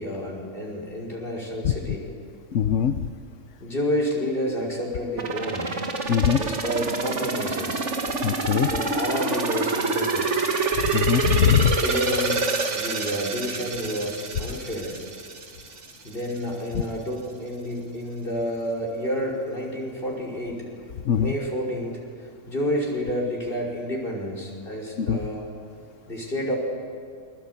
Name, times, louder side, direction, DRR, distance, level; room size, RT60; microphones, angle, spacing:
voice 1, 0.0-2.1 3.6-5.7 6.3-7.9 8.6-10.4 11.8-12.4 12.7-15.0 16.0-20.6 21.1-22.0 22.5-25.5 26.1-26.6, equal, 45° left, -1 dB, 5.7 m, -29 dB
voice 2, 2.5-2.9 6.1-6.4 8.2-8.7 10.8-11.8 21.1-21.3 25.0-25.2, left 8 dB, 70° left, 9 dB, 1.2 m, -21 dB
sound 1, 5.2-15.9 16.3-16.4, right 3 dB, 60° right, 2.1 m, -27 dB
29.0 x 23.0 x 8.4 m, 2.2 s
omnidirectional pair, 1.4 m